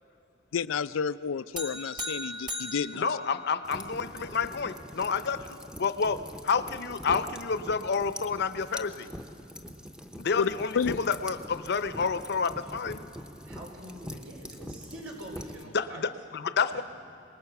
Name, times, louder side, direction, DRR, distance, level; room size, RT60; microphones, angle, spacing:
voice 1, 0.5-3.1 10.4-11.0, left 6 dB, 90° left, 16 dB, 0.4 m, -30 dB
sound 1, 1.6-4.0, left 1 dB, 25° right, 1.3 m, -38 dB
voice 2, 2.9-9.1 10.2-10.7 11.0-13.0 15.7-16.8, left 5 dB, 60° left, 12 dB, 0.7 m, -29 dB
sound 2, 3.6-15.6, equal, 5° right, 0.7 m, -43 dB
voice 3, 13.1-16.1 16.7-16.8, right 1 dB, 85° right, -1 dB, 4.8 m, -45 dB
26.5 x 20.0 x 6.0 m, 2.5 s
head